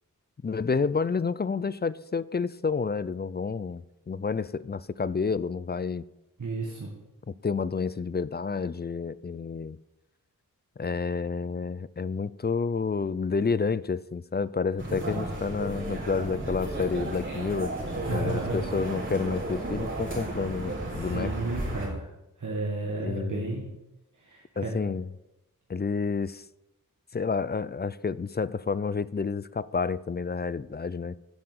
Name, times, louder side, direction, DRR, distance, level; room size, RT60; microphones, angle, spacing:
voice 1, 0.4-6.1 7.3-9.8 10.8-17.7 18.1-21.3 23.0-23.6 24.6-25.1 25.7-26.5 27.1-31.2, left 5 dB, 30° left, 19 dB, 0.4 m, -30 dB
voice 2, 6.4-6.9 18.0-18.6 21.0-22.1 22.4-23.6 24.2-24.8, right 3 dB, 60° right, -2 dB, 1.9 m, -33 dB
sound 1, 14.8-21.9, right 1 dB, 35° right, 4.3 m, -33 dB
9.5 x 6.7 x 7.8 m, 0.93 s
cardioid pair, 55°, 35 cm